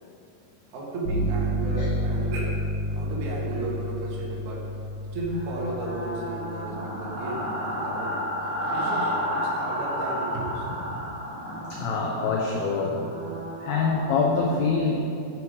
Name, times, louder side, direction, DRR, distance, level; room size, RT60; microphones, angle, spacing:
voice 1, 0.7-2.5 2.8-4.6 5.1-8.2 8.7-11.0, right 2 dB, 55° right, -4 dB, 2.3 m, -34 dB
sound 1, 1.0-8.8, equal, 65° left, 1.0 m, -31 dB
sound 2, 5.3-14.1, equal, 85° right, 0.6 m, -32 dB
voice 2, 11.7-13.0 13.6-14.9, left 4 dB, 85° left, 0 dB, 2.1 m, -25 dB
10.5 x 10.0 x 4.9 m, 2.6 s
omnidirectional pair, 5.5 m